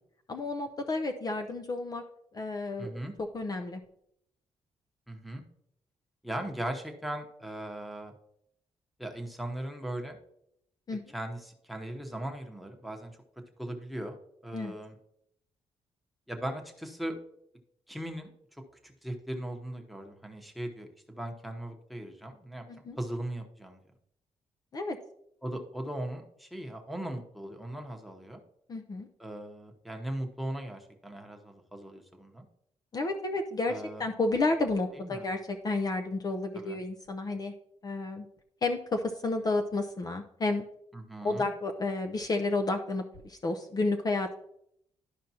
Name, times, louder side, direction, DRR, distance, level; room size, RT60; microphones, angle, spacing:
voice 1, 0.3-2.0 2.3-3.0 3.3-3.8 10.9-11.0 14.5-14.8 22.7-23.0 24.7-25.0 28.7-29.1 32.9-37.5 37.8-38.3 38.6-40.6 41.2-44.3, left 2 dB, 35° left, 5 dB, 0.6 m, -31 dB
voice 2, 2.8-3.1 5.1-5.4 6.2-8.1 9.0-10.2 11.1-13.1 13.6-14.2 14.4-15.0 16.3-17.2 17.9-18.3 18.8-23.8 25.4-28.4 29.2-32.5 33.7-34.0 34.9-35.3 36.5-36.8 40.9-41.5, right 1 dB, ahead, 5 dB, 1.0 m, -38 dB
12.0 x 5.0 x 2.8 m, 0.74 s
cardioid pair, 120°, 11 cm